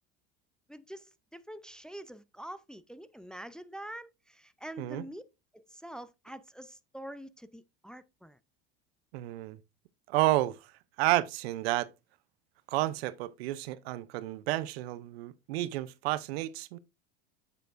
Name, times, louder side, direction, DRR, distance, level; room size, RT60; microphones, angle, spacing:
voice 1, 0.7-5.2 5.5-8.4, right 1 dB, 5° left, 0.5 m, -45 dB
voice 2, 9.1-9.6 10.1-10.7 11.0-11.9 12.7-16.8, right 16 dB, 80° right, 0.7 m, -31 dB
8.2 x 6.9 x 2.5 m
supercardioid pair, 105°, 30 cm